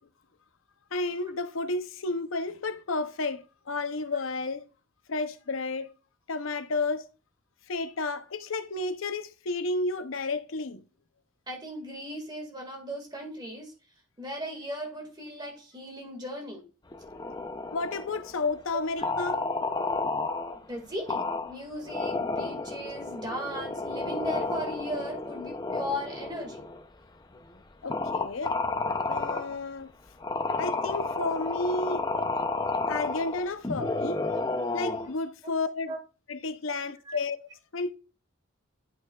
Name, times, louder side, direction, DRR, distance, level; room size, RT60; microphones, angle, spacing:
voice 1, 0.9-4.7 5.1-5.9 6.3-7.0 7.7-10.8 17.7-19.4 27.8-28.6 29.1-29.9 30.6-32.0 32.9-34.2 34.7-35.9 36.3-37.4 37.7-37.9, left 3 dB, 85° left, 0.7 m, -31 dB
voice 2, 11.5-13.7 14.2-16.6 18.7-19.1 20.7-26.6 34.3-34.5 35.4-35.5 35.9-36.0 37.1-37.2, equal, 20° right, 1.9 m, -37 dB
sound 1, 16.9-18.5 19.0-20.6 21.1-21.5 21.8-26.8 27.3-27.4 27.9-29.6 30.2-35.1, left 3 dB, 20° left, 0.6 m, -31 dB
11.0 x 6.2 x 2.3 m
head